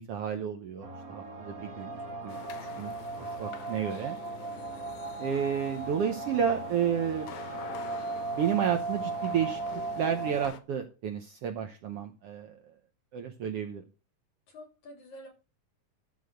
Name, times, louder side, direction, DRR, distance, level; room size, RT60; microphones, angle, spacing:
voice 1, 0.0-2.4 2.8-4.2 5.2-7.3 8.3-12.7 13.1-13.8, right 8 dB, 85° right, 5 dB, 1.3 m, -31 dB
sound 1, 0.8-10.5, right 3 dB, 30° right, 2.0 m, -37 dB
voice 2, 2.1-2.8 14.5-15.3, equal, 60° left, 0 dB, 4.6 m, -50 dB
sound 2, 2.3-10.6, left 11 dB, 80° left, 2.6 m, -47 dB
12.5 x 4.2 x 6.5 m, 0.33 s
omnidirectional pair, 4.0 m